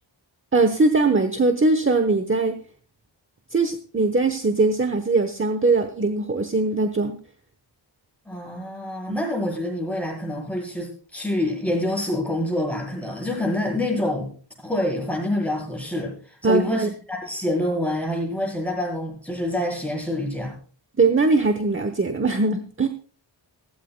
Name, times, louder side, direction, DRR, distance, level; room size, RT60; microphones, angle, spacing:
voice 1, 0.5-2.6 3.5-7.2 9.1-9.2 16.4-16.9 21.0-22.9, right 3 dB, 25° right, 8 dB, 1.0 m, -21 dB
voice 2, 8.3-14.3 14.6-20.6, left 1 dB, 5° left, -2 dB, 7.7 m, -26 dB
16.0 x 15.5 x 2.2 m, 0.42 s
wide cardioid pair, 95°, 45 cm